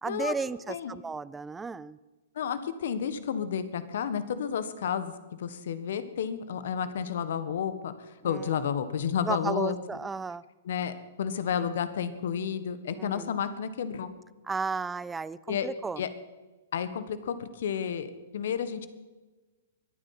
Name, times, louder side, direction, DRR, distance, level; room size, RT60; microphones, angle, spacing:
voice 1, 0.0-2.0 8.2-8.5 9.2-10.4 13.0-13.4 14.4-16.1, right 4 dB, 10° right, 19 dB, 0.5 m, -34 dB
voice 2, 2.3-5.1 5.4-7.9 8.2-9.8 10.6-14.1 15.5-15.7 16.0-16.1 16.7-18.9, left 8 dB, 60° left, 13 dB, 1.5 m, -31 dB
23.5 x 9.2 x 5.9 m, 1.2 s
hypercardioid pair, 120°, 0 cm